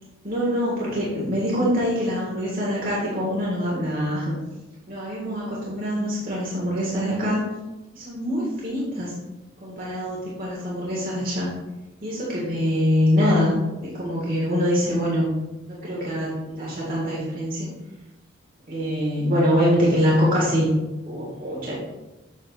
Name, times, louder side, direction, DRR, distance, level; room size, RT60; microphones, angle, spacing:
voice 1, 0.2-4.3 4.9-7.4 7.9-9.2 9.6-11.5 12.0-13.5 13.8-15.3 15.7-17.7 18.7-20.7 21.0-21.7, equal, 45° right, -6 dB, 1.6 m, -24 dB
7.6 x 6.0 x 2.4 m, 1.0 s
head